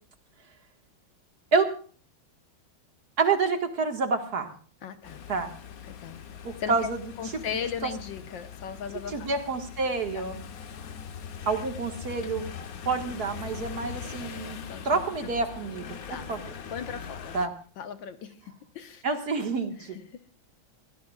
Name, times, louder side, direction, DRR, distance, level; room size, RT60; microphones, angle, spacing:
voice 1, 3.2-4.5 5.3-5.5 6.4-7.0 7.8-7.9 9.1-10.4 11.5-12.5 12.9-14.6 14.8-16.4 17.3-17.5 19.0-20.0, right 4 dB, 50° right, 5 dB, 2.1 m, -28 dB
voice 2, 4.8-5.2 5.9-6.2 6.6-6.9 7.2-9.3 10.1-10.2 14.7-14.8 16.1-16.3 16.7-17.4 17.8-18.4 18.7-19.0 19.8-20.2, left 7 dB, 70° left, 9 dB, 1.8 m, -37 dB
sound 1, 5.0-17.5, left 7 dB, 55° left, 1.2 m, -41 dB
24.0 x 16.5 x 2.4 m, 0.42 s
omnidirectional pair, 2.2 m